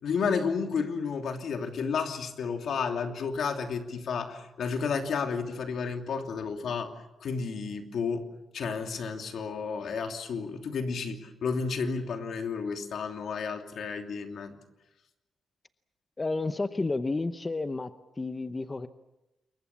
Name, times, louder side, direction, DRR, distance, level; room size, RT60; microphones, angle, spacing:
voice 1, 0.0-6.9 7.2-8.3 8.5-14.6, left 5 dB, 75° left, 4 dB, 3.0 m, -32 dB
voice 2, 16.2-18.9, left 3 dB, 25° left, 10 dB, 0.8 m, -31 dB
28.5 x 22.5 x 7.2 m, 0.96 s
wide cardioid pair, 130°, 0 cm